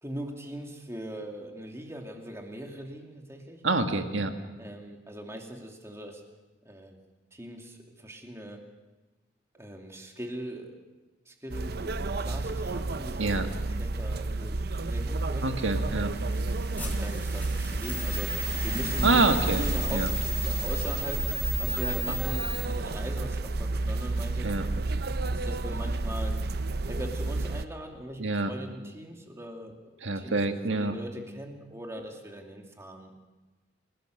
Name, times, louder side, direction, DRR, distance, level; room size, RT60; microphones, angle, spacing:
voice 1, 0.0-3.6 4.6-6.2 6.6-7.0 7.3-8.6 9.5-10.8 11.3-13.4 13.7-15.6 16.8-20.2 20.4-21.3 21.6-24.5 25.3-26.4 26.9-30.4 30.7-33.1, right 1 dB, 15° right, 2 dB, 2.6 m, -40 dB
voice 2, 3.6-4.3 13.2-13.5 15.4-16.1 19.0-19.6 19.9-20.1 24.4-24.7 28.2-28.5 30.0-30.9, right 3 dB, 85° right, 6 dB, 1.8 m, -26 dB
sound 1, 11.5-27.7, right 2 dB, 55° right, 0.7 m, -31 dB
sound 2, 16.3-22.6, left 2 dB, 10° left, 3.9 m, -36 dB
28.5 x 17.0 x 6.6 m, 1.2 s
head